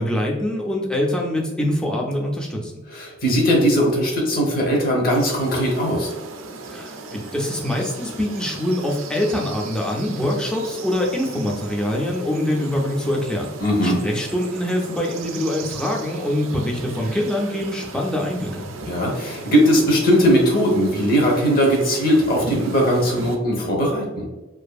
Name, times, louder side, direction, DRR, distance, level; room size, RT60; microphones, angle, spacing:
voice 1, 0.0-2.8 6.7-13.5 13.8-18.7, left 1 dB, 5° left, -2 dB, 0.4 m, -24 dB
voice 2, 2.9-6.1 13.6-14.0 18.9-24.2, equal, 50° left, -1 dB, 0.8 m, -19 dB
sound 1, 5.1-23.4, right 3 dB, 85° right, 0.4 m, -37 dB
2.6 x 2.5 x 2.3 m, 1.2 s
head